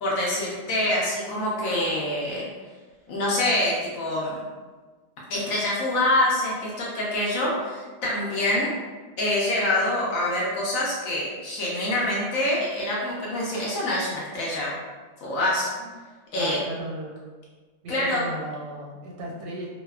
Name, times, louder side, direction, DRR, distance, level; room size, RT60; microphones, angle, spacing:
voice 1, 0.0-2.4 3.1-4.4 5.3-8.8 9.2-14.8 15.2-15.7 16.3-16.6 17.9-18.3, left 1 dB, 70° left, -4 dB, 0.9 m, -25 dB
voice 2, 16.3-17.1 17.8-19.7, right 1 dB, 80° right, -2 dB, 1.1 m, -36 dB
2.7 x 2.1 x 2.3 m, 1.4 s
omnidirectional pair, 1.7 m